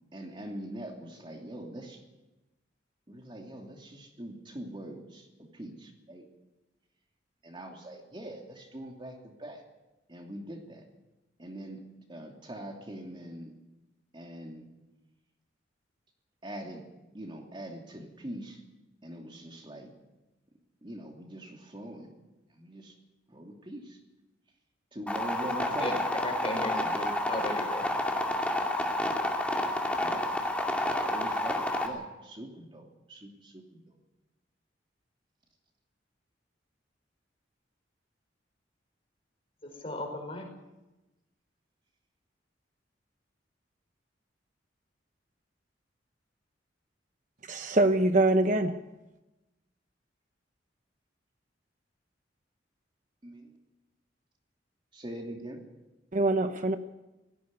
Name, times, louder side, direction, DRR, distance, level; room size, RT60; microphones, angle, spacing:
voice 1, 0.1-2.0 3.1-5.3 5.5-6.2 7.4-9.6 10.1-10.8 11.4-11.8 12.1-13.5 14.1-14.7 16.4-16.9 17.1-18.6 19.0-19.9 20.8-22.1 22.5-22.9 23.3-24.0 24.9-26.1 26.7-27.1 30.0-30.2 31.1-33.8 53.2-53.5 54.9-55.6, right 1 dB, 25° right, 2.9 m, -42 dB
sound 1, 25.1-31.9, left 1 dB, 5° left, 2.4 m, -30 dB
voice 2, 25.4-25.9 26.2-26.7 27.2-27.9 39.6-40.4, left 2 dB, 30° left, 4.9 m, -36 dB
voice 3, 47.5-48.8 56.1-56.8, right 2 dB, 45° right, 0.9 m, -24 dB
18.0 x 15.0 x 9.7 m
head